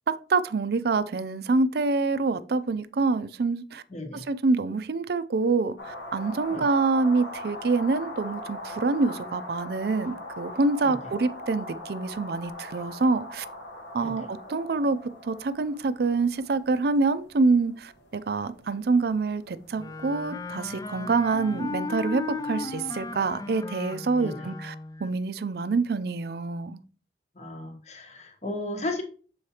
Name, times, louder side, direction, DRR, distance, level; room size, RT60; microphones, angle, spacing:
voice 1, 0.1-3.8 4.3-13.4 13.9-15.0 15.2-24.7 25.0-26.8, right 3 dB, 60° right, 0.4 m, -26 dB
voice 2, 3.9-4.2 6.5-6.7 10.8-11.1 14.0-14.3 24.2-24.5 27.3-29.0, left 2 dB, 40° left, 1.1 m, -35 dB
sound 1, 5.8-23.6, left 1 dB, 90° left, 1.1 m, -42 dB
Wind instrument woodwind instrument, 19.8-25.1, left 3 dB, 20° left, 0.3 m, -36 dB
7.0 x 4.8 x 2.9 m
head